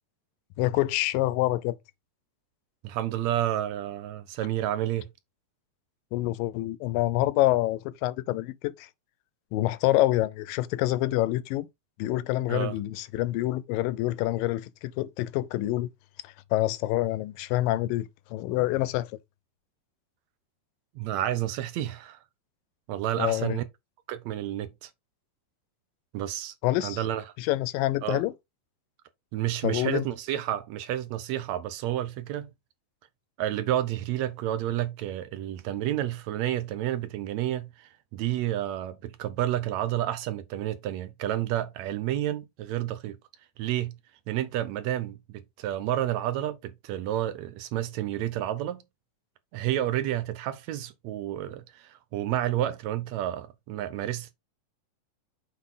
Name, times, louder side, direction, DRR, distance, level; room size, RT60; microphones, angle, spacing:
voice 1, 0.6-1.8 6.1-8.9 9.5-11.7 12.0-15.9 16.2-19.1 23.2-23.6 26.6-27.0 27.4-28.3 29.6-30.1, left 16 dB, 85° left, 2.3 m, -27 dB
voice 2, 2.8-5.1 12.5-12.7 20.9-22.2 22.9-23.6 24.1-24.9 26.1-26.5 26.8-27.2 28.0-28.2 29.3-32.5 33.4-43.2 43.6-43.9 44.3-48.8 49.5-54.4, right 12 dB, 75° right, 1.6 m, -30 dB
7.4 x 3.9 x 3.9 m
omnidirectional pair, 4.0 m